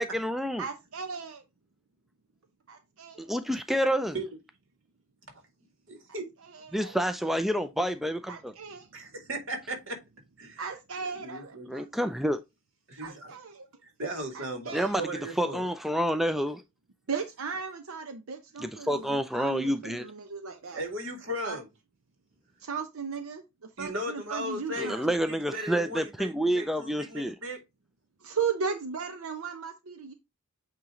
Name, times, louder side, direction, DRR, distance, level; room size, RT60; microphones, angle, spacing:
voice 1, 0.0-0.7 3.2-4.2 6.7-8.5 11.7-12.4 14.7-15.1 15.4-16.6 18.6-20.0 24.8-27.4, equal, ahead, 0.3 m, -28 dB
voice 2, 0.6-1.4 2.7-3.2 6.5-7.0 8.3-8.9 10.6-11.9 13.0-13.7 14.3-15.1 17.1-19.0 19.3-20.8 21.4-21.6 22.6-23.4 23.8-25.1 28.2-30.1, right 5 dB, 85° right, 0.8 m, -36 dB
voice 3, 5.9-6.3 8.9-10.0 10.4-10.6 11.1-11.7 12.9-13.4 14.0-15.7 17.1-17.2 20.7-21.7 23.8-27.6, right 1 dB, 60° right, 2.3 m, -37 dB
8.6 x 3.0 x 3.7 m
head